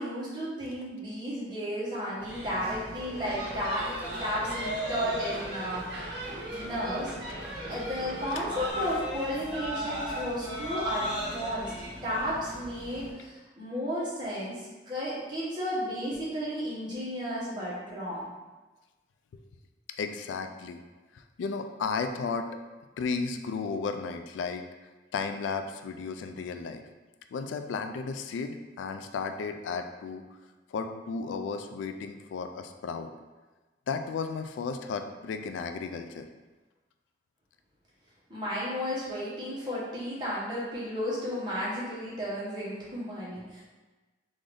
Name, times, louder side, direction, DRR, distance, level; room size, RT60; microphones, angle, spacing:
voice 1, 0.0-6.1 6.6-7.1 7.7-11.7 12.0-18.3 38.3-43.6, equal, 25° right, -8 dB, 1.1 m, -33 dB
sound 1, 2.2-13.1, equal, 10° right, 1.3 m, -37 dB
sound 2, 3.0-8.7, right 1 dB, 65° right, 0.7 m, -39 dB
voice 2, 20.0-20.8 21.1-22.5 23.0-24.6 25.1-26.8 27.3-30.2 30.7-33.1 33.9-36.3, left 5 dB, 90° left, 7 dB, 0.3 m, -34 dB
3.7 x 2.5 x 3.3 m, 1.2 s
head